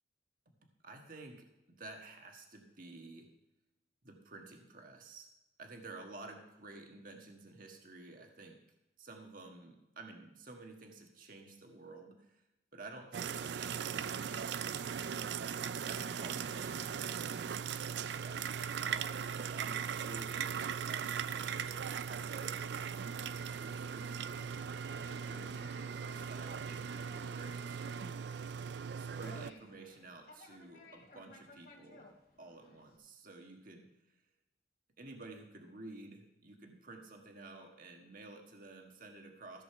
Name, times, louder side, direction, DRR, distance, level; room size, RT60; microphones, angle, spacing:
voice 1, 0.8-3.3 4.0-5.3 5.6-8.6 9.0-12.4 12.7-14.3 15.9-17.0 18.2-24.8 25.1-28.3 29.0-33.9 35.0-39.6, right 2 dB, 50° right, 3 dB, 1.5 m, -52 dB
sound 1, 13.1-29.5, right 7 dB, 65° right, 0.4 m, -39 dB
Conversation, 24.6-33.0, left 2 dB, 50° left, 2.4 m, -60 dB
15.0 x 5.4 x 6.8 m, 0.94 s
head